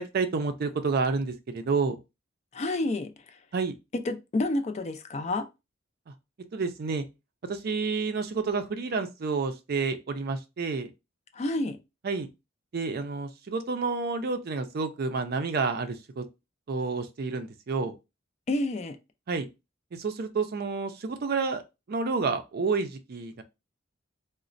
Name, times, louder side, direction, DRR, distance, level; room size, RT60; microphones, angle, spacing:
voice 1, 0.0-2.0 3.5-3.7 6.5-7.0 7.5-10.9 12.0-12.3 12.7-16.2 16.7-17.9 19.3-19.5 19.9-21.6 21.9-23.4, right 4 dB, 50° right, 0.4 m, -29 dB
voice 2, 2.5-3.4 4.0-5.5 11.3-11.8 18.5-19.0, left 2 dB, 35° left, 0.4 m, -29 dB
4.0 x 2.1 x 2.5 m
head